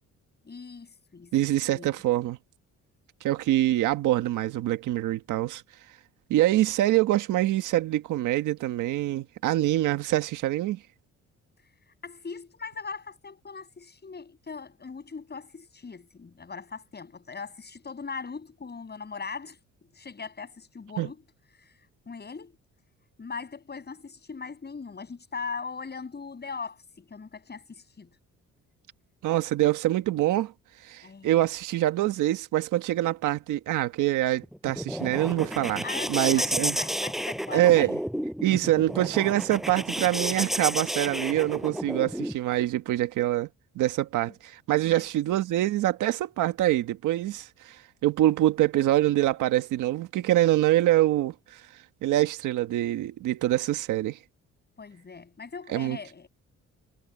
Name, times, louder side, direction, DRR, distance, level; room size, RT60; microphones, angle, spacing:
voice 1, 0.4-1.3 1.7-2.0 12.0-19.6 19.9-21.2 21.6-21.7 22.0-22.6 23.2-28.1 31.0-31.4 35.8-37.9 44.8-45.0 54.8-56.3, left 5 dB, 35° left, 7.0 m, -40 dB
voice 2, 1.3-2.4 3.2-5.6 6.3-10.8 21.0-21.1 29.2-30.5 30.8-35.8 36.1-36.8 37.5-38.0 38.4-43.5 43.7-51.6 52.0-54.2 55.7-56.0, right 14 dB, 90° right, 1.6 m, -25 dB
sound 1, 34.4-42.3, equal, ahead, 6.7 m, -31 dB
cardioid pair, 90°, 30 cm